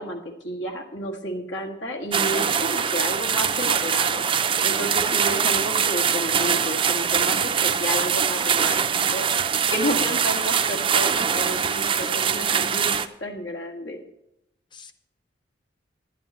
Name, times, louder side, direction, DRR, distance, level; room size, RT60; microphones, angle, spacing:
voice 1, 0.0-8.8 9.1-14.0, equal, 80° left, 0 dB, 1.7 m, -31 dB
sound 1, 2.1-13.1, right 7 dB, 25° right, 0.5 m, -23 dB
voice 2, 5.0-5.6 9.9-10.2 12.0-12.5 14.7-14.9, left 2 dB, 25° left, 9 dB, 0.7 m, -39 dB
11.5 x 11.0 x 4.3 m, 0.84 s
head